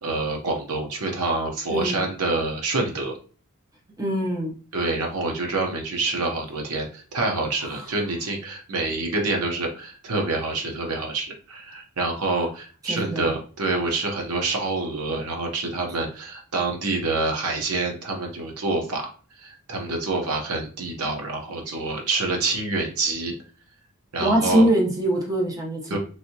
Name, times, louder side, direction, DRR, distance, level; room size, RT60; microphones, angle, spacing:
voice 1, 0.0-3.1 4.7-19.0 19.4-23.3 24.1-24.7 25.9-26.0, right 3 dB, 80° right, 1 dB, 0.9 m, -27 dB
voice 2, 1.7-2.1 4.0-4.5 7.6-7.9 12.9-13.3 24.2-26.0, right 1 dB, 15° right, -2 dB, 0.8 m, -23 dB
3.2 x 2.7 x 2.8 m, 0.38 s
head